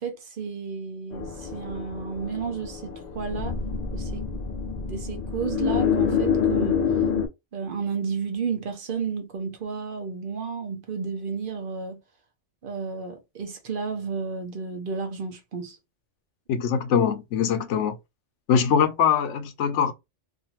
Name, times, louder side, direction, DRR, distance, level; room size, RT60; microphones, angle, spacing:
voice 1, 0.0-3.6 3.9-4.3 4.9-6.9 7.5-12.0 12.6-15.8, right 5 dB, 55° right, 0.8 m, -32 dB
sound 1, 1.1-7.3, left 6 dB, 60° left, 0.4 m, -27 dB
voice 2, 16.5-18.0 18.5-19.9, left 7 dB, 90° left, 0.9 m, -22 dB
2.6 x 2.5 x 2.9 m
omnidirectional pair, 1.2 m